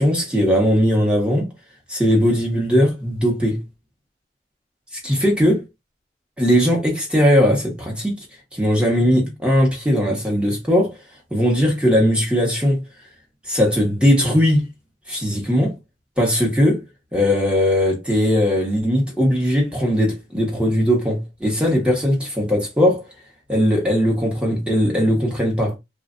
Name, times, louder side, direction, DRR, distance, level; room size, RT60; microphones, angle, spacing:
voice 1, 0.0-1.5 1.9-3.6 5.0-5.6 6.4-8.2 8.5-11.0 11.3-12.8 13.5-14.6 15.1-15.8 16.2-16.8 17.1-23.0 23.5-25.8, equal, 5° right, 1.1 m, -19 dB
3.1 x 2.5 x 2.5 m
head